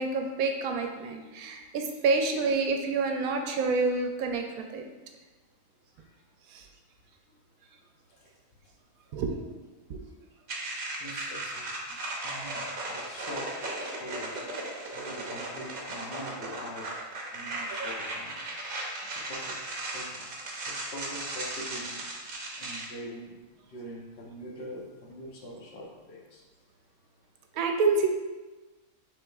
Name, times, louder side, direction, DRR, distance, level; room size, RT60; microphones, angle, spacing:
voice 1, 0.0-4.4 4.7-4.8 6.5-6.6 9.1-9.3 17.7-17.9 27.6-28.1, right 4 dB, 75° right, 4 dB, 1.0 m, -27 dB
sound 1, 10.5-22.9, right 2 dB, 45° right, 0.7 m, -36 dB
voice 2, 11.0-11.8 12.2-14.4 14.9-16.9 17.3-18.3 19.1-19.6 19.9-20.3 20.7-22.0 22.6-23.3 23.7-26.4, equal, 50° left, -2 dB, 1.0 m, -43 dB
5.9 x 3.6 x 2.3 m, 1.2 s
omnidirectional pair, 1.5 m